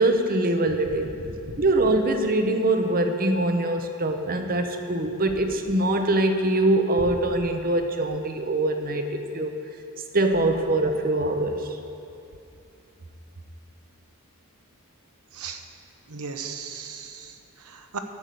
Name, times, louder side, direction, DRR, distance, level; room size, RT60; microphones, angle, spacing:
voice 1, 0.0-1.1 1.6-9.5 10.1-11.6, right 2 dB, 40° right, 6 dB, 0.8 m, -23 dB
voice 2, 0.9-1.6 7.0-7.1 15.3-15.6 16.1-18.0, right 4 dB, 80° right, 6 dB, 1.0 m, -37 dB
11.5 x 6.6 x 8.4 m, 2.6 s
head